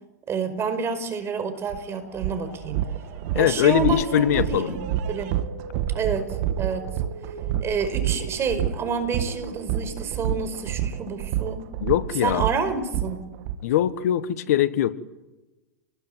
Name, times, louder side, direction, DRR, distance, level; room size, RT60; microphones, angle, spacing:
voice 1, 0.3-2.9 3.3-5.3 5.9-6.9 7.6-11.6 12.2-13.2, right 5 dB, 30° right, 10 dB, 5.1 m, -28 dB
sound 1, 1.1-12.8, right 2 dB, 85° right, 7.6 m, -43 dB
sound 2, 1.7-1.8 2.2-13.6, right 11 dB, 55° right, 1.6 m, -28 dB
voice 2, 3.3-4.8 11.8-12.5 13.6-14.9, left 12 dB, 65° left, 14 dB, 1.6 m, -22 dB
28.5 x 20.5 x 9.4 m, 1.1 s
hypercardioid pair, 105°, 9 cm